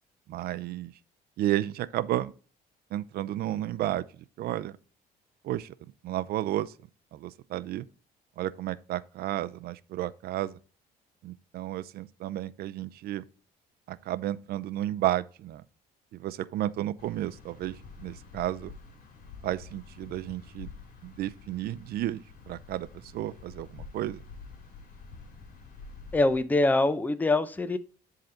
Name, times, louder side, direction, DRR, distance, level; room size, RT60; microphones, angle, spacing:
voice 1, 0.3-0.9 1.4-2.3 2.9-4.8 5.4-5.7 6.0-6.7 7.1-7.9 8.4-10.6 11.2-13.2 13.9-15.6 16.1-18.7 19.4-20.7 21.0-24.2, right 13 dB, 70° right, 0.6 m, -32 dB
sound 1, 17.0-26.4, left 4 dB, 60° left, 2.8 m, -48 dB
voice 2, 26.1-27.8, left 2 dB, 10° left, 0.6 m, -24 dB
10.5 x 3.9 x 4.4 m
cardioid pair, 110°, 17 cm